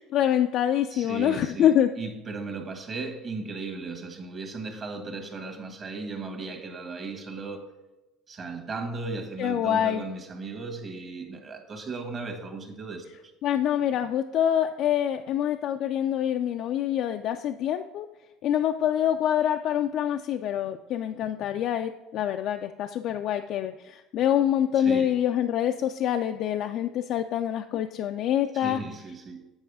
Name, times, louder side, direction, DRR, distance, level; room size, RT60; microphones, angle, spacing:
voice 1, 0.1-1.9 9.4-10.0 13.4-18.1 18.4-28.8, left 10 dB, 60° left, 0.3 m, -25 dB
voice 2, 0.9-7.7 8.3-13.3 24.8-25.2 28.5-29.5, right 3 dB, 35° right, 1.4 m, -36 dB
7.9 x 4.9 x 4.8 m
supercardioid pair, 90°, 0 cm